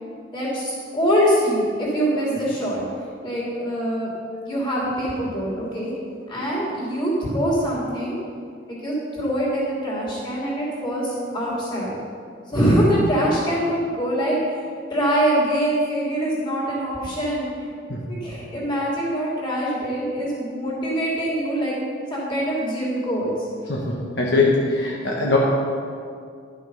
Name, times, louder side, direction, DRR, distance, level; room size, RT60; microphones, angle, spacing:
voice 1, 0.3-2.8 3.2-4.1 4.4-5.9 6.3-8.1 8.7-12.0 12.5-14.6 14.9-17.5 18.1-21.8 22.1-23.3, equal, 25° left, -6 dB, 3.1 m, -24 dB
voice 2, 17.9-18.2 23.7-25.4, left 3 dB, 65° left, -3 dB, 1.2 m, -22 dB
12.0 x 6.5 x 5.5 m, 2.2 s
head